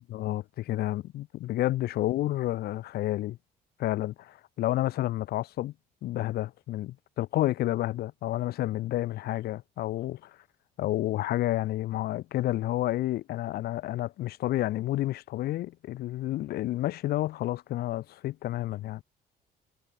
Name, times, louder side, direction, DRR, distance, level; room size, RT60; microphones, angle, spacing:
voice 1, 0.1-3.4 3.8-5.7 6.0-10.3 10.8-19.0, left 15 dB, 65° left, 0.8 m, -30 dB
cardioid pair, 110°, 17 cm